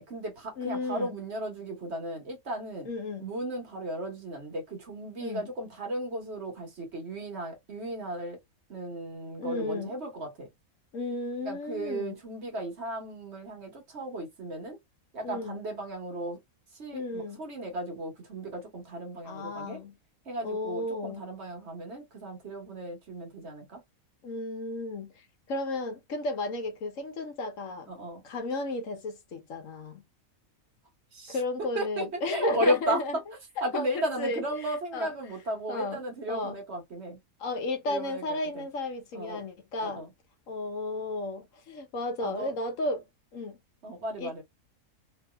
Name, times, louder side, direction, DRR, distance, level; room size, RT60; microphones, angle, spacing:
voice 1, 0.0-2.9 3.2-8.4 8.7-10.5 11.4-14.8 15.1-16.4 16.8-19.8 20.3-23.8 27.9-28.2 31.1-31.4 31.7-33.0 33.6-37.2 37.9-38.4 39.1-39.4 39.8-40.1 42.2-42.5 43.8-44.4, right 1 dB, 50° right, 1.4 m, -35 dB
voice 2, 0.6-1.2 2.8-3.3 5.2-5.5 9.4-9.9 10.9-12.2 15.2-15.6 16.9-17.4 19.2-19.9 20.4-21.3 24.2-27.9 28.2-30.0 31.3-33.2 33.6-35.4 35.7-36.0 36.3-36.6 37.4-40.0 40.5-43.0 43.3-43.6 44.2-44.4, left 2 dB, 65° left, 1.2 m, -34 dB
3.1 x 2.8 x 2.2 m
omnidirectional pair, 1.5 m